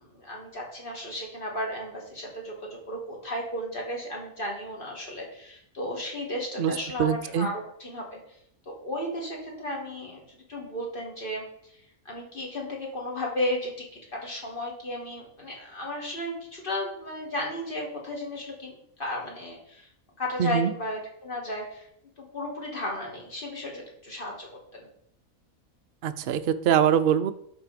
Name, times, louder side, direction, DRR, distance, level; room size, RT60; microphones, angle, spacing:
voice 1, 0.0-8.2 8.7-11.5 12.1-19.9 20.2-21.9 22.2-24.9, left 1 dB, 40° left, -1 dB, 2.2 m, -34 dB
voice 2, 7.0-7.5 20.4-20.7 26.0-27.3, right 9 dB, 60° right, 10 dB, 0.6 m, -23 dB
11.0 x 4.1 x 5.0 m, 0.74 s
omnidirectional pair, 1.5 m